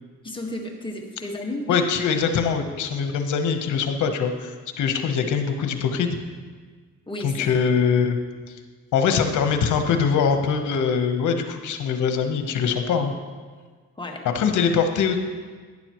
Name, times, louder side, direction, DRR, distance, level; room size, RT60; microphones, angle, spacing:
voice 1, 0.2-1.8 7.1-7.6 14.0-14.2, left 1 dB, 15° left, 1 dB, 1.5 m, -33 dB
voice 2, 1.7-6.2 7.2-8.2 8.5-8.6 8.9-13.1 14.3-15.2, left 6 dB, 75° left, 6 dB, 1.0 m, -23 dB
11.5 x 9.6 x 3.1 m, 1.5 s
cardioid pair, 90°, 30 cm